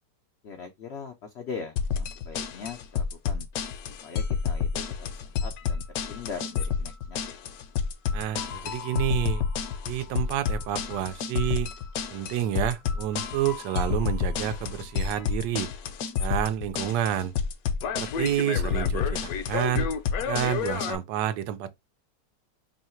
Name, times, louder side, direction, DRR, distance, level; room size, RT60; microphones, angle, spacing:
voice 1, 0.4-3.5 4.0-7.2, left 5 dB, 90° left, 0.5 m, -41 dB
sound 1, 1.8-21.0, left 6 dB, 70° left, 1.0 m, -29 dB
voice 2, 8.1-9.4 9.9-11.7 12.1-15.7 16.2-17.3 17.9-19.9 20.2-21.7, right 11 dB, 85° right, 1.2 m, -29 dB
3.1 x 2.8 x 4.3 m
omnidirectional pair, 1.9 m